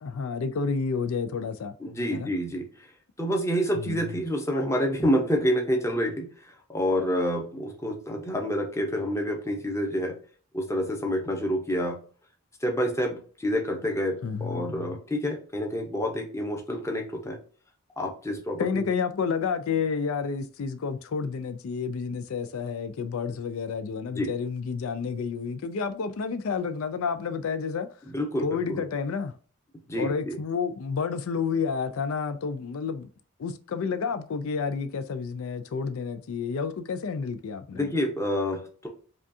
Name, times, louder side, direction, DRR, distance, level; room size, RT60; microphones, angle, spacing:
voice 1, 0.0-1.8 2.1-2.3 3.8-4.2 14.2-15.0 18.6-27.9 28.4-29.3 30.0-33.1 33.4-37.9, left 5 dB, 75° left, 0.4 m, -30 dB
voice 2, 1.8-2.9 3.2-10.1 10.5-12.0 12.6-17.4 18.0-18.8 24.1-24.3 28.1-28.8 29.9-30.3 37.7-38.9, equal, 15° left, 0.7 m, -28 dB
4.9 x 2.4 x 2.6 m
head